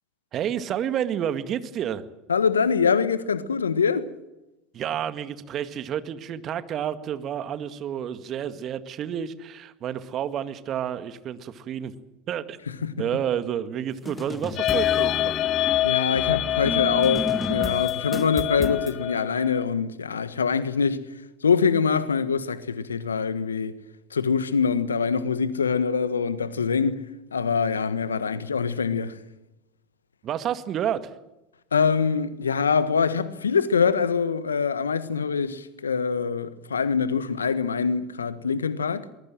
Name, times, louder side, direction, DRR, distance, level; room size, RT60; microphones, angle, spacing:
voice 1, 0.3-2.0 4.7-11.9 12.3-12.6 13.0-15.4 30.2-31.1, right 9 dB, 45° right, 2.0 m, -30 dB
voice 2, 2.3-4.1 12.8-13.0 15.8-21.0 21.4-23.8 24.1-27.0 27.3-29.2 31.7-39.1, left 6 dB, 85° left, 1.4 m, -24 dB
sound 1, 14.1-18.9, left 3 dB, 20° left, 2.1 m, -32 dB
sound 2, 14.6-19.7, left 13 dB, 50° left, 1.4 m, -26 dB
23.5 x 21.0 x 7.7 m
figure-of-eight pair, 75°, 0 cm